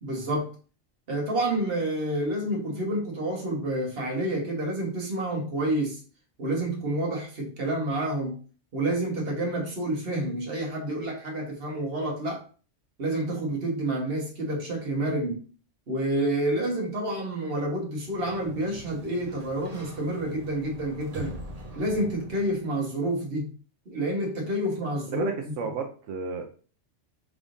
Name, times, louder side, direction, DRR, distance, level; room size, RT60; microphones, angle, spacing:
voice 1, 0.0-0.5 1.1-6.0 6.4-8.4 8.7-12.4 13.0-15.4 15.9-21.4 21.7-23.5 23.9-25.3, right 1 dB, 55° right, 1.5 m, -29 dB
Sliding door, 17.9-22.8, right 2 dB, 35° right, 0.8 m, -43 dB
voice 2, 25.1-26.4, right 5 dB, 85° right, 1.0 m, -32 dB
4.8 x 3.5 x 2.5 m
omnidirectional pair, 1.2 m